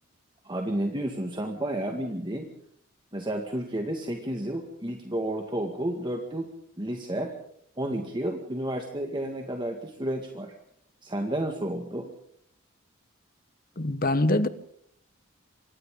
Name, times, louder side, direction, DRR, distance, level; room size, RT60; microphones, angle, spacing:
voice 1, 0.4-2.5 3.1-6.5 6.8-7.3 7.8-10.5 11.0-12.1, right 1 dB, 20° right, 2.0 m, -31 dB
voice 2, 13.8-14.5, left 1 dB, 45° left, 1.2 m, -24 dB
28.5 x 25.0 x 3.8 m
head